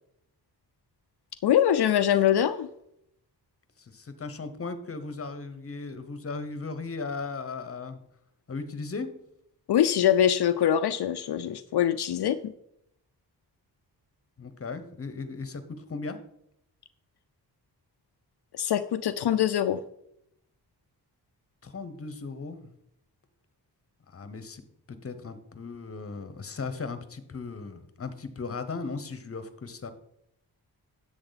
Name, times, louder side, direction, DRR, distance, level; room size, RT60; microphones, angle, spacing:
voice 1, 1.4-2.7 9.7-12.4 18.5-19.8, left 10 dB, 75° left, 9 dB, 0.5 m, -23 dB
voice 2, 3.9-8.0 8.5-9.1 14.4-15.6 15.9-16.2 21.6-22.7 24.1-24.6 24.9-29.9, left 4 dB, 35° left, 10 dB, 1.0 m, -37 dB
10.5 x 7.7 x 4.1 m, 0.77 s
wide cardioid pair, 115°, 40 cm